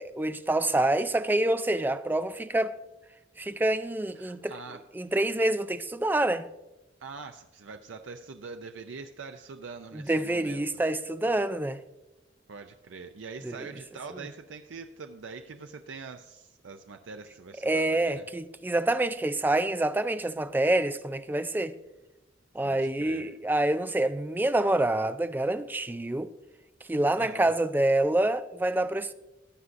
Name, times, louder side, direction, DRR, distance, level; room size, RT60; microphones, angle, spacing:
voice 1, 0.0-2.7 3.4-4.5 4.9-6.5 9.9-11.8 13.4-13.7 17.6-21.7 22.5-26.3 26.9-29.1, right 1 dB, 10° right, 0.3 m, -27 dB
voice 2, 4.1-4.8 7.0-10.6 12.5-18.3 22.6-23.3 27.2-27.5, right 4 dB, 90° right, 0.5 m, -44 dB
15.5 x 9.4 x 2.6 m
head